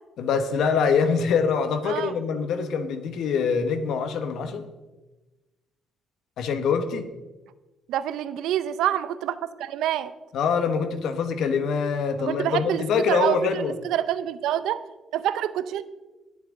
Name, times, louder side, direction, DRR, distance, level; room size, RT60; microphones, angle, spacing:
voice 1, 0.2-4.6 6.4-7.1 10.3-13.7, left 5 dB, 80° left, 9 dB, 1.2 m, -24 dB
voice 2, 1.9-2.2 7.9-10.1 12.2-14.8 15.1-15.8, right 11 dB, 90° right, 14 dB, 0.6 m, -27 dB
19.5 x 7.5 x 3.8 m, 1.1 s
cardioid pair, 90°, 0 cm